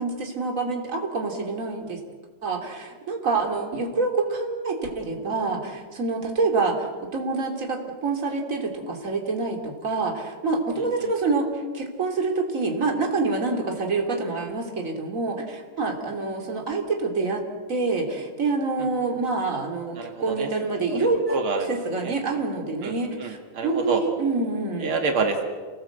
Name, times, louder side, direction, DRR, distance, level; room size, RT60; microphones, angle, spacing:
voice 1, 0.0-2.0 2.4-17.4 17.7-21.4 21.7-23.4 23.6-24.9, right 3 dB, 40° right, 2 dB, 3.3 m, -26 dB
voice 2, 10.8-11.1 19.9-20.5 20.9-21.7 22.0-22.1 22.8-24.0 24.8-25.4, right 4 dB, 80° right, 4 dB, 2.9 m, -28 dB
28.0 x 19.5 x 8.1 m, 1.6 s
omnidirectional pair, 2.3 m